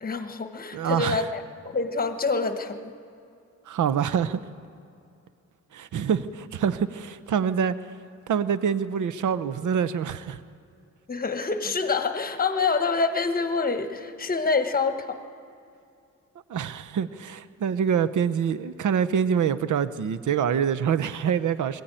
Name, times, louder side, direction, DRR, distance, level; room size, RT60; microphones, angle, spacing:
voice 1, 0.0-2.9 11.1-15.2, left 4 dB, 30° left, 1.2 m, -26 dB
voice 2, 0.7-1.2 3.7-4.4 5.7-7.7 8.3-10.4 16.5-21.8, right 7 dB, 70° right, 0.8 m, -25 dB
21.0 x 14.5 x 9.0 m
wide cardioid pair, 150°, 32 cm